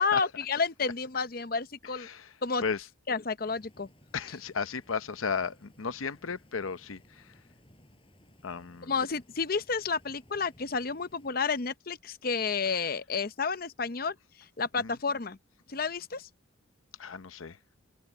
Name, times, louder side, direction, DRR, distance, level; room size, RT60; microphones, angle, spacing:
voice 1, 0.0-2.1 2.4-2.6 3.1-3.9 8.8-14.2 14.6-15.4 15.7-16.3, left 5 dB, 45° left, 0.7 m, -30 dB
voice 2, 1.9-2.9 4.1-7.4 8.4-9.0 14.7-15.0 17.0-17.6, left 5 dB, 90° left, 0.8 m, -35 dB
Stream, 3.5-11.3, equal, 25° left, 7.2 m, -60 dB
head